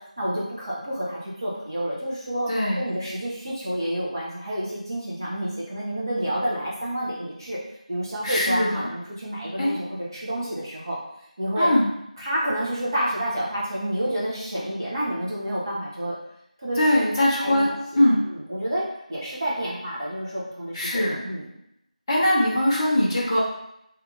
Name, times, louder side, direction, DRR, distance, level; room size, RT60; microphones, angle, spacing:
voice 1, 0.2-2.5 2.8-7.6 7.9-11.0 11.4-11.7 12.2-16.2 16.6-16.8 17.4-17.6 17.9-18.0 18.3-18.8 19.1-21.5, right 1 dB, 30° right, -7 dB, 1.0 m, -29 dB
voice 2, 2.5-2.9 8.2-8.8 9.6-9.7 11.6-11.9 16.8-18.2 20.7-21.2 22.1-23.4, left 1 dB, 15° left, -10 dB, 0.8 m, -21 dB
2.8 x 2.5 x 3.8 m, 0.78 s
figure-of-eight pair, 170°, 4 cm